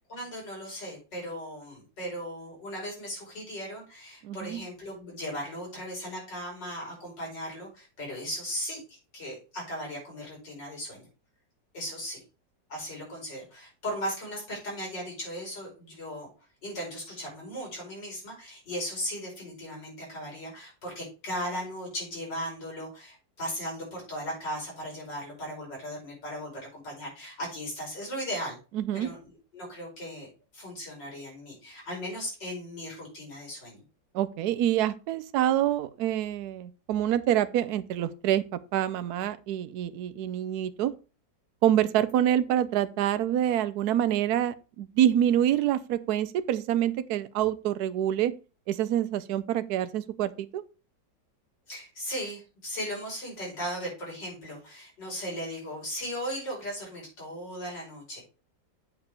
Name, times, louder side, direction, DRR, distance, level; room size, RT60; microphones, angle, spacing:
voice 1, 0.1-11.1 11.7-12.2 12.7-16.3 16.6-28.6 28.9-33.8 51.7-58.2, equal, 70° left, 5.6 m, -37 dB
voice 2, 4.2-4.6 28.7-29.1 34.1-40.9 41.6-48.3 48.7-50.6, right 11 dB, 70° right, 1.1 m, -26 dB
8.2 x 4.7 x 5.0 m
omnidirectional pair, 2.0 m